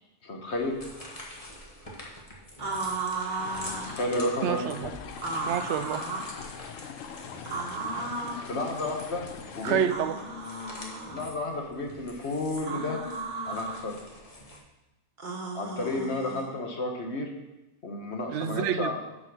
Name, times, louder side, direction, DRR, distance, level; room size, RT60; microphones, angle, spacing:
voice 1, 0.2-0.8 3.9-4.9 8.5-9.2 9.6-9.8 11.1-13.0 13.5-14.0 15.5-17.3 17.8-19.0, left 2 dB, 60° left, 2 dB, 1.6 m, -31 dB
sound 1, 0.5-14.6, left 1 dB, 30° left, 1.5 m, -46 dB
sound 2, 2.6-4.0 5.2-6.3 7.5-8.5 9.8-11.2 12.6-13.8 15.2-16.5, right 3 dB, 40° right, 1.3 m, -35 dB
sound 3, 3.4-9.9, left 7 dB, 90° left, 1.1 m, -42 dB
voice 2, 4.4-4.9 5.3-6.0 9.6-10.2 18.3-18.9, right 8 dB, 70° right, 12 dB, 0.9 m, -28 dB
7.7 x 6.1 x 6.2 m, 1.0 s
omnidirectional pair, 1.3 m